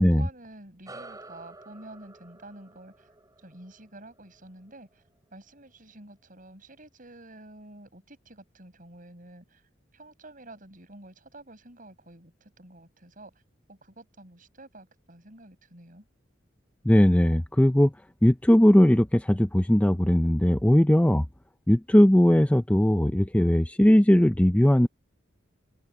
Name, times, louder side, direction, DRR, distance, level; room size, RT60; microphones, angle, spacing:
voice 1, 0.0-3.1 3.4-5.0 5.3-9.6 9.9-13.3 13.7-16.0, right 2 dB, 45° right, 6.9 m, -49 dB
sound 1, 0.8-5.7, right 2 dB, 20° right, 6.1 m, -50 dB
voice 2, 16.8-17.9 18.2-21.3 21.7-24.9, equal, 5° left, 0.5 m, -19 dB
head